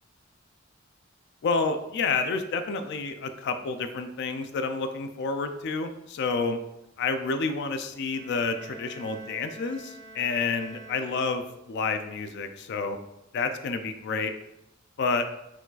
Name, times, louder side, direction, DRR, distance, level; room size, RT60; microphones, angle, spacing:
voice 1, 1.4-6.6 7.0-13.0 13.3-14.3 15.0-15.3, left 4 dB, 55° left, 8 dB, 0.4 m, -29 dB
sound 1, 8.0-11.9, right 2 dB, 65° right, 0.7 m, -47 dB
4.7 x 2.4 x 3.9 m, 0.87 s
head